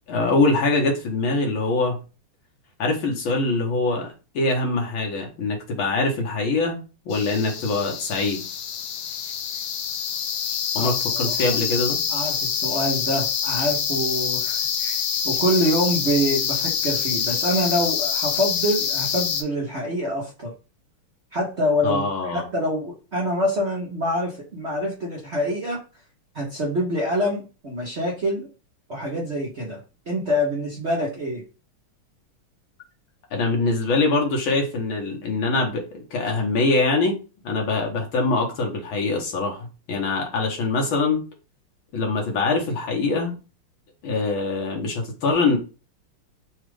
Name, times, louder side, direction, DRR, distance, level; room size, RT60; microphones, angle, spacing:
voice 1, 0.1-2.0 2.8-6.8 7.1-8.4 10.7-12.0 21.8-22.4 33.3-37.1 37.4-41.2 41.9-43.3 44.0-45.6, left 3 dB, 70° left, 1 dB, 1.8 m, -23 dB
sound 1, 7.1-19.4, left 7 dB, 85° left, 1.6 m, -26 dB
voice 2, 10.7-11.6 12.1-20.5 21.3-25.8 26.3-28.5 28.9-29.8 30.1-31.4, equal, 50° right, -4 dB, 0.8 m, -26 dB
4.2 x 2.4 x 4.7 m, 0.33 s
omnidirectional pair, 2.4 m